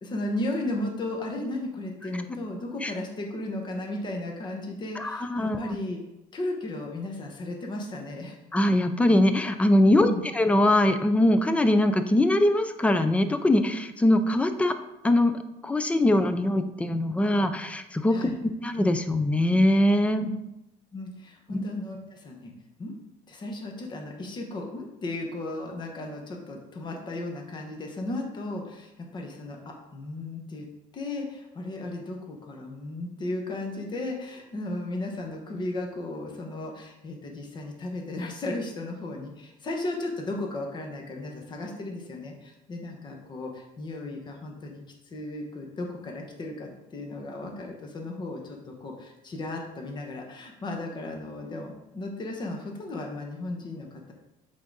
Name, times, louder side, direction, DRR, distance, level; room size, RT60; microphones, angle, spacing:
voice 1, 0.0-6.0 6.3-8.4 9.9-10.2 18.1-18.4 20.2-20.3 20.9-22.5 22.8-22.9 23.3-30.7 30.9-44.8 45.1-54.1, left 2 dB, 30° left, 2 dB, 1.0 m, -35 dB
voice 2, 5.0-5.8 8.5-14.7 15.0-20.3 21.5-21.6, left 1 dB, 10° left, 9 dB, 0.4 m, -22 dB
7.9 x 3.8 x 3.9 m, 0.94 s
cardioid pair, 145°, 16 cm